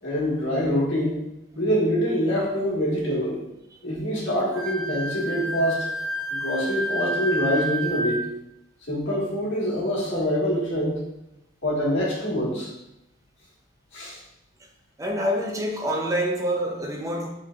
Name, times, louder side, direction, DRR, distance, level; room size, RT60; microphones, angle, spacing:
voice 1, 0.0-1.2 1.5-3.4 3.8-5.9 6.3-8.2 8.9-11.0 11.6-12.7 13.9-14.2, equal, 55° left, -6 dB, 1.5 m, -25 dB
Wind instrument woodwind instrument, 4.5-8.2, right 1 dB, 75° right, 1.4 m, -29 dB
voice 2, 15.0-17.3, equal, 15° right, 2 dB, 0.4 m, -26 dB
5.5 x 3.2 x 2.4 m, 0.87 s
head